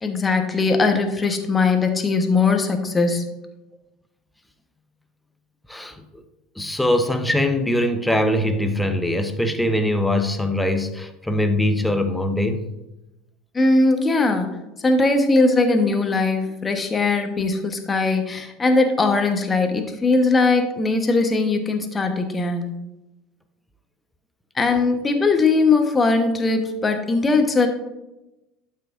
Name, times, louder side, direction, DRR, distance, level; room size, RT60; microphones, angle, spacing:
voice 1, 0.0-3.3 13.5-14.5 14.8-22.7 24.5-27.7, left 3 dB, 20° left, 6 dB, 1.2 m, -20 dB
voice 2, 5.7-6.2 6.6-12.7, left 1 dB, 5° left, 7 dB, 0.9 m, -22 dB
12.0 x 5.7 x 2.6 m, 0.96 s
hypercardioid pair, 75°, 0 cm